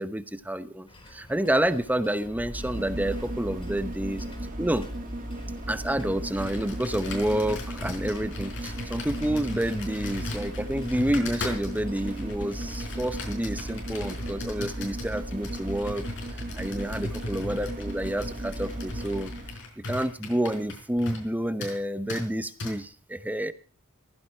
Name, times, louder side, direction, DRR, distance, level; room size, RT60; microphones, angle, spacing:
voice 1, 0.0-4.2 4.6-4.9 5.7-16.0 16.5-19.3 19.9-23.5, right 1 dB, 5° right, 13 dB, 0.8 m, -29 dB
sound 1, 0.9-12.4, left 1 dB, 25° left, 4.5 m, -51 dB
sound 2, 2.2-19.6 20.0-20.1, right 1 dB, 40° right, 1.8 m, -36 dB
Computer keyboard, 6.3-21.3 21.6-21.8 22.1-22.2 22.6-22.7, left 2 dB, 60° left, 4.8 m, -39 dB
16.5 x 15.0 x 4.4 m, 0.38 s
head